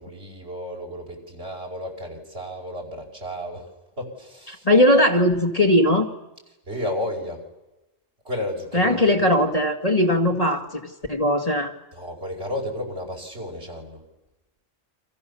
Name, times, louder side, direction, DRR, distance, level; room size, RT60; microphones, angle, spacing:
voice 1, 0.0-3.7 4.0-4.7 6.7-7.4 8.2-9.3 11.9-14.0, left 1 dB, 60° right, 0 dB, 5.8 m, -33 dB
voice 2, 4.6-6.1 8.7-11.7, left 1 dB, 30° left, 3 dB, 2.2 m, -19 dB
29.5 x 26.0 x 7.0 m, 0.98 s
omnidirectional pair, 1.3 m